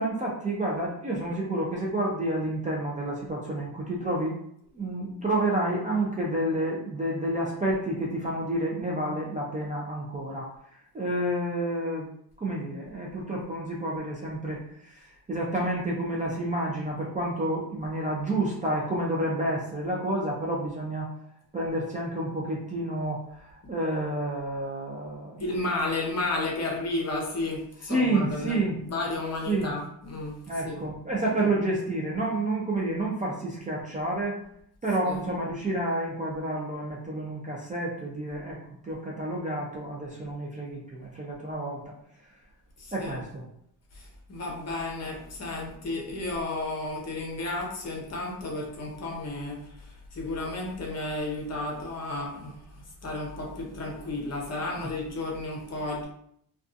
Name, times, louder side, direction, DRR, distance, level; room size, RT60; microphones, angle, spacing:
voice 1, 0.0-4.4 4.7-10.5 10.9-12.1 12.4-21.1 21.5-25.4 27.9-28.8 29.5-29.7 30.5-34.4 34.8-38.6 38.8-41.9 42.9-43.4 54.8-54.9, right 1 dB, 20° right, -4 dB, 0.3 m, -29 dB
voice 2, 25.4-30.8 31.4-31.5 35.0-35.3 42.8-43.2 43.9-52.5 53.0-56.1, left 2 dB, 40° left, -1 dB, 0.7 m, -33 dB
2.6 x 2.3 x 2.4 m, 0.69 s
wide cardioid pair, 140°, 39 cm